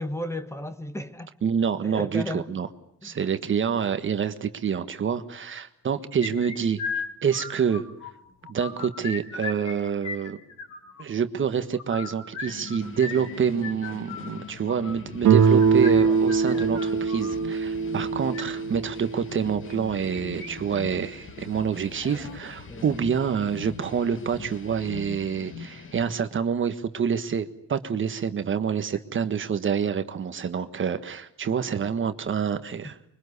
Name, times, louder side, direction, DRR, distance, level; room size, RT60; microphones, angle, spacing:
voice 1, 0.0-1.3 1.8-2.5 3.0-3.2 16.0-16.2 16.5-16.7 22.7-22.9, left 1 dB, 10° left, 1.5 m, -34 dB
voice 2, 1.4-2.7 3.0-6.8 7.2-7.9 8.5-10.4 11.0-33.0, right 7 dB, 40° right, 1.5 m, -27 dB
sound 1, 6.2-8.1 8.4-9.8 10.0-11.0 11.7-17.4 18.1-18.4 19.7-20.5 20.8-20.9 21.3-21.4 22.0-22.4, left 5 dB, 60° left, 5.6 m, -36 dB
sound 2, 12.5-26.2, left 5 dB, 40° left, 2.4 m, -42 dB
Guitar, 15.2-20.0, right 6 dB, 60° right, 2.2 m, -22 dB
25.5 x 24.0 x 8.2 m
cardioid pair, 140°, 32 cm